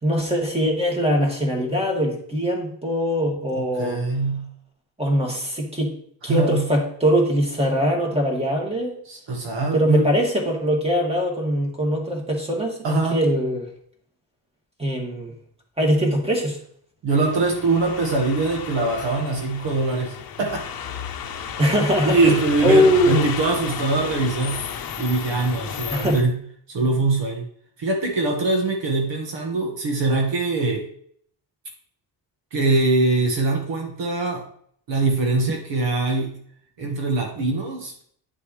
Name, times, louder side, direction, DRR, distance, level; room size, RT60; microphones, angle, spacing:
voice 1, 0.0-4.0 5.0-5.9 6.2-9.0 9.7-13.7 14.8-15.3 15.8-16.6 21.6-23.2 25.9-26.2, equal, 15° right, 0 dB, 2.2 m, -22 dB
voice 2, 3.5-4.5 6.3-6.6 9.1-10.1 12.8-13.2 17.0-20.7 22.0-24.6 25.0-26.4 26.7-27.4 27.8-30.8 32.5-34.5 34.9-36.4 36.8-37.9, right 3 dB, 80° right, 1 dB, 1.7 m, -23 dB
sound 1, 17.1-26.2, left 8 dB, 55° left, 0.8 m, -33 dB
10.5 x 6.7 x 3.3 m, 0.62 s
wide cardioid pair, 145°, 43 cm